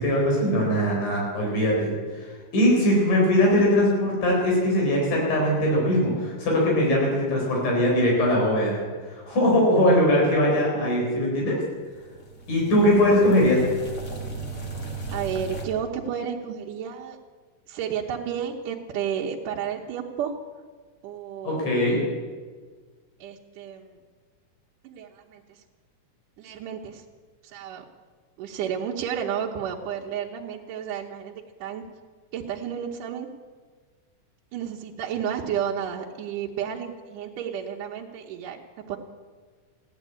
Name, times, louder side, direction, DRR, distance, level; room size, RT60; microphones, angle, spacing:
voice 1, 0.0-2.2 2.5-8.8 9.1-11.6 12.5-13.6 21.4-22.0, left 1 dB, 70° left, -2 dB, 5.8 m, -21 dB
sound 1, 11.8-15.6, right 3 dB, 30° left, 1.8 m, -36 dB
voice 2, 15.1-17.2 17.7-20.3 21.0-21.9 23.2-24.0 24.8-25.4 26.4-27.0 27.4-27.8 28.4-31.8 32.3-33.3 34.5-38.6 38.9-39.0, right 8 dB, 75° right, -1 dB, 2.5 m, -32 dB
16.0 x 10.5 x 8.4 m, 1.5 s
omnidirectional pair, 3.8 m